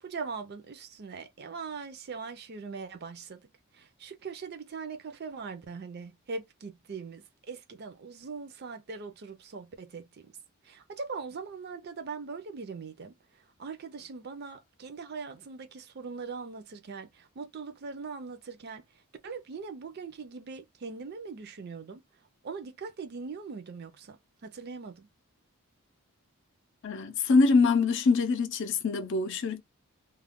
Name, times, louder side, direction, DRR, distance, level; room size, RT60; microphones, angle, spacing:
voice 1, 0.0-3.4 3.7-10.3 10.6-13.2 13.6-18.9 19.2-22.0 22.4-25.1, right 5 dB, 45° right, 0.4 m, -41 dB
voice 2, 26.8-29.6, left 4 dB, 55° left, 0.5 m, -24 dB
2.4 x 2.1 x 3.5 m
head